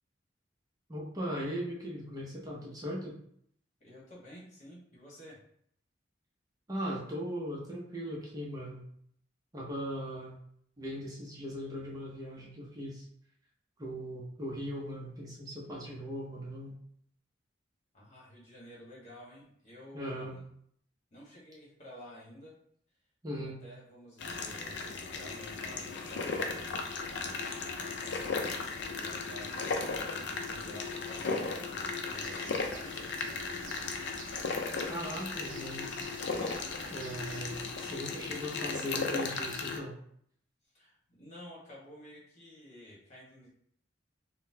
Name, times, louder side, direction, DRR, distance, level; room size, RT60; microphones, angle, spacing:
voice 1, 0.9-3.2 6.7-8.8 9.5-10.4 10.8-13.1 13.8-16.8 19.9-20.4 23.2-23.6 34.9-36.1 36.9-40.0, equal, 20° right, -4 dB, 0.5 m, -39 dB
voice 2, 3.8-5.4 17.9-20.5 21.1-22.5 23.3-26.5 27.2-28.2 28.9-33.6 40.7-43.5, equal, 40° left, -5 dB, 1.1 m, -52 dB
sound 1, 24.2-39.8, left 4 dB, 65° left, 0.4 m, -36 dB
Bird, 32.1-37.7, right 5 dB, 75° right, 0.4 m, -52 dB
3.8 x 2.0 x 2.7 m, 0.66 s
head